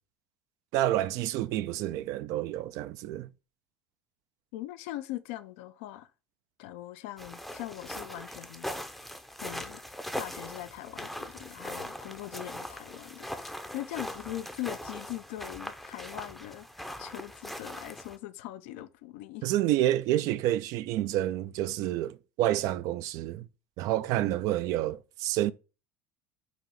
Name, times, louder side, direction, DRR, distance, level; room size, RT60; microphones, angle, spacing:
voice 1, 0.7-3.3 19.4-23.5 23.8-25.5, right 13 dB, 55° right, 0.4 m, -29 dB
voice 2, 4.5-6.1 6.6-8.7 9.4-9.8 10.2-19.5, left 15 dB, 70° left, 0.4 m, -41 dB
sound 1, 7.2-18.2, equal, ahead, 0.6 m, -41 dB
4.1 x 2.6 x 4.6 m
hypercardioid pair, 75°, 7 cm